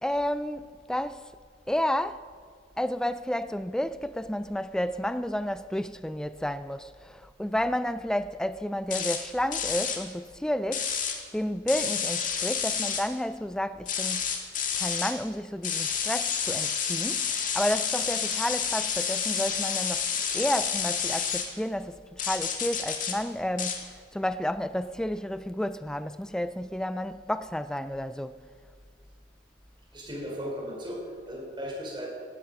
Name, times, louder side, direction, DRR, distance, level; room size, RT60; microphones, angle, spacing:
voice 1, 0.0-1.2 1.7-2.2 2.8-10.9 11.3-14.2 14.7-20.1 20.3-23.9 24.1-28.4, left 1 dB, 5° left, 0.3 m, -31 dB
sound 1, 8.9-9.2 9.5-10.0 10.7-11.2 11.7-13.0 13.9-15.1 15.6-21.5 22.2-23.2 23.6-23.8, left 7 dB, 45° left, 2.0 m, -29 dB
voice 2, 29.9-32.1, equal, 25° right, 4.4 m, -36 dB
17.5 x 13.0 x 5.4 m
head